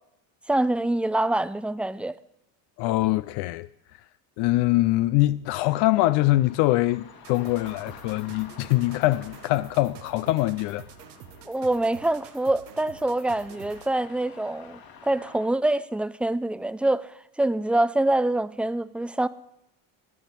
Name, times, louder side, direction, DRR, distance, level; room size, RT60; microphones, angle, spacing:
voice 1, 0.5-2.2 11.5-19.3, right 1 dB, 5° right, 0.4 m, -25 dB
voice 2, 2.8-3.7 4.4-10.8, left 17 dB, 70° left, 0.6 m, -23 dB
sound 1, 5.4-15.5, left 7 dB, 55° left, 2.0 m, -50 dB
sound 2, 7.2-14.0, right 10 dB, 85° right, 1.2 m, -48 dB
12.5 x 7.3 x 9.6 m
supercardioid pair, 85°, 43 cm